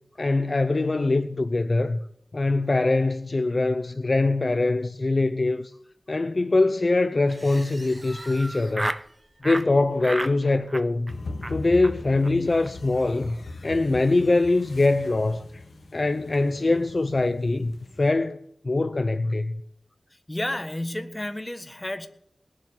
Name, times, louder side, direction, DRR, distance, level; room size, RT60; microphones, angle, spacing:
voice 1, 0.2-2.0 2.3-5.7 6.1-8.9 9.4-11.1 11.5-13.4 13.6-15.6 15.9-18.4 18.6-19.6, left 2 dB, 50° left, 0.6 m, -23 dB
Laughter, 7.3-9.1 9.4-9.7 10.0-10.4 10.7-11.1 11.4-11.6 11.8-11.9 12.2-12.3 12.6-12.7 13.0-13.3, right 1 dB, 30° right, 0.5 m, -33 dB
sound 1, 11.1-18.1, left 2 dB, 85° left, 1.2 m, -40 dB
voice 2, 20.1-22.1, left 1 dB, 20° left, 1.4 m, -31 dB
19.5 x 7.6 x 8.1 m
wide cardioid pair, 55°, 0 cm